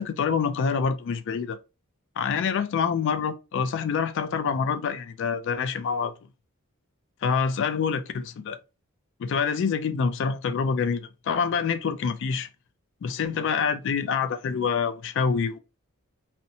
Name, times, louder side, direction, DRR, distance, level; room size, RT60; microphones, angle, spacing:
voice 1, 0.0-1.6 2.2-6.1 7.2-8.6 9.2-12.5 13.0-15.6, left 6 dB, 55° left, 0.3 m, -26 dB
2.8 x 2.1 x 2.5 m
head